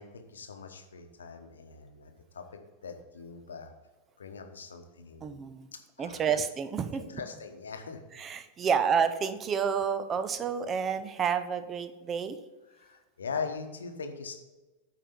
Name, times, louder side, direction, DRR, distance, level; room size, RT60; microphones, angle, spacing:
voice 1, 0.0-2.5 2.8-3.7 4.2-5.4 6.0-6.4 6.9-8.2 12.7-14.4, left 5 dB, 70° left, 6 dB, 1.0 m, -41 dB
voice 2, 5.2-5.7 6.0-7.0 8.2-12.4, right 7 dB, 25° right, 10 dB, 0.6 m, -29 dB
8.9 x 4.7 x 5.2 m, 1.2 s
figure-of-eight pair, 90°, 0 cm